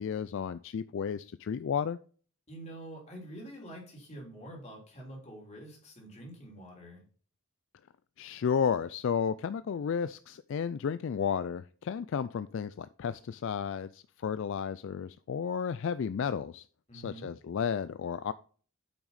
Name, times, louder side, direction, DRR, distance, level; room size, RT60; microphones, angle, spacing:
voice 1, 0.0-2.0 8.2-16.7 16.9-18.3, left 7 dB, 60° left, 14 dB, 0.3 m, -32 dB
voice 2, 2.5-7.0 16.9-17.3, right 1 dB, 30° left, -2 dB, 3.3 m, -46 dB
8.7 x 6.0 x 4.1 m, 0.42 s
head